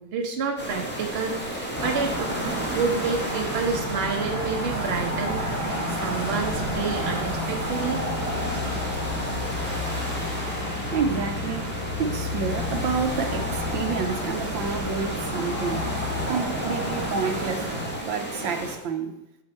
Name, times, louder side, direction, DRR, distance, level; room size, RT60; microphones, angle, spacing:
voice 1, 0.0-2.3 2.7-8.5, right 5 dB, 40° right, 2 dB, 1.2 m, -29 dB
sound 1, 0.6-18.8, equal, 5° left, 1.4 m, -34 dB
sound 2, 1.7-18.0, right 1 dB, 15° right, 2.7 m, -31 dB
sound 3, 3.6-16.3, left 9 dB, 90° left, 1.5 m, -36 dB
voice 2, 10.9-11.7 12.0-15.9 16.3-17.7 18.0-19.2, right 5 dB, 85° right, 6 dB, 1.5 m, -29 dB
7.8 x 7.6 x 4.3 m, 0.88 s
omnidirectional pair, 2.0 m